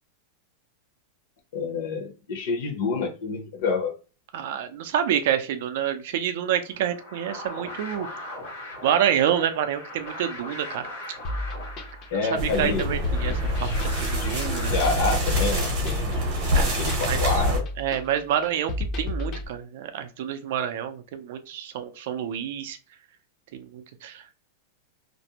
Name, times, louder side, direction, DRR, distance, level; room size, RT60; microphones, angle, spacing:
voice 1, 1.5-4.0 8.3-8.5 12.1-12.9 14.2-14.3 14.7-16.1 16.7-17.7, left 4 dB, 60° left, 0.7 m, -28 dB
voice 2, 4.3-8.1 8.8-10.9 12.1-13.7 14.0-14.8 16.5-17.2 17.8-22.8 23.5-24.2, right 9 dB, 50° right, 0.3 m, -28 dB
sound 1, 6.7-16.1, left 1 dB, 80° left, 1.3 m, -40 dB
sound 2, 11.2-19.5, left 1 dB, 25° left, 0.4 m, -32 dB
sound 3, 12.4-17.6, equal, 35° right, 0.8 m, -26 dB
2.5 x 2.0 x 2.8 m
supercardioid pair, 175°, 0 cm